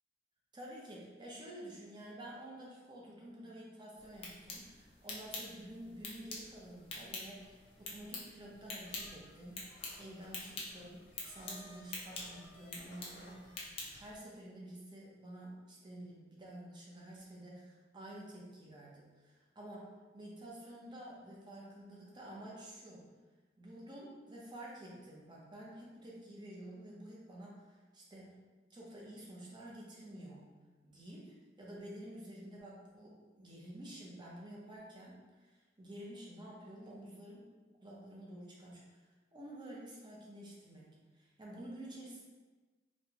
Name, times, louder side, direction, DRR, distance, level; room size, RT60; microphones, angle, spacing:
voice 1, 0.5-9.7 10.0-23.1 23.6-28.3 28.7-30.5 30.8-35.5 35.8-37.5 37.8-39.0 39.3-42.2, right 1 dB, 25° right, -4 dB, 0.7 m, -50 dB
sound 1, 4.0-14.2, left 2 dB, 30° left, 0.6 m, -47 dB
sound 2, 7.2-8.0 8.8-13.6, left 1 dB, 65° left, 0.9 m, -59 dB
4.2 x 2.2 x 2.9 m, 1.3 s
head